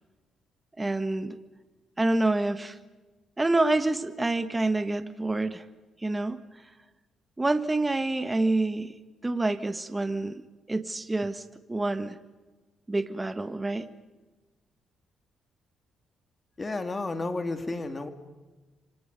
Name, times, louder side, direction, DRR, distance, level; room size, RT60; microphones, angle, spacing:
voice 1, 0.8-1.4 2.0-2.8 3.4-5.6 6.0-6.4 7.4-8.9 9.2-10.4 10.7-12.2 12.9-13.9, right 2 dB, 15° right, 10 dB, 1.5 m, -27 dB
voice 2, 16.6-18.1, left 2 dB, 25° left, 8 dB, 2.5 m, -32 dB
29.0 x 25.0 x 5.4 m, 1.2 s
cardioid pair, 90°, 0 cm